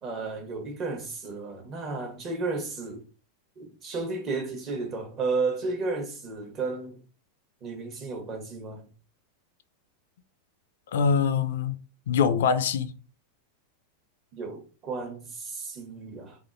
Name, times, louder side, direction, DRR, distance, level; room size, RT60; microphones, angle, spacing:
voice 1, 0.0-3.0 3.6-7.0 7.6-8.9 14.3-16.4, right 3 dB, 30° right, 1.0 m, -33 dB
voice 2, 10.9-13.0, left 6 dB, 85° left, 0.4 m, -24 dB
3.4 x 2.4 x 2.5 m
supercardioid pair, 145°, 0 cm